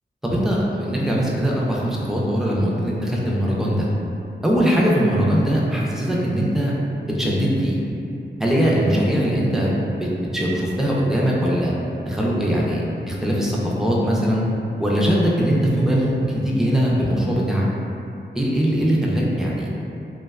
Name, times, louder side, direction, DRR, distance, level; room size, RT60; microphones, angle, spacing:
voice 1, 0.2-3.9 4.4-6.7 7.1-7.8 8.4-11.7 12.0-14.4 14.8-17.7 18.3-19.7, equal, ahead, -5 dB, 0.4 m, -21 dB
2.6 x 2.1 x 2.2 m, 2.7 s
wide cardioid pair, 90°, 19 cm